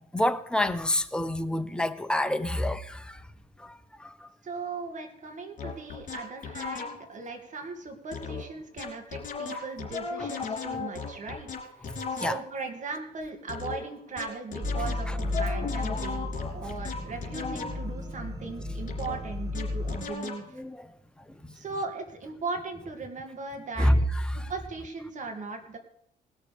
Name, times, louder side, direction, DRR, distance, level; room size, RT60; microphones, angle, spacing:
voice 1, 0.0-3.2 3.6-4.3 12.2-12.4 15.1-15.2 20.6-20.9 23.8-24.0 24.3-24.5, left 1 dB, 5° left, 0.8 m, -28 dB
voice 2, 4.4-11.5 11.8-20.6 21.5-24.0 24.3-25.8, right 4 dB, 45° right, 2.3 m, -38 dB
sound 1, 5.6-7.2 8.1-8.5 8.8-12.6 13.5-18.0 18.9-20.5, left 5 dB, 50° left, 3.2 m, -37 dB
sound 2, 14.6-20.1, left 2 dB, 20° right, 1.2 m, -33 dB
19.5 x 6.6 x 5.1 m
cardioid pair, 110°, 17 cm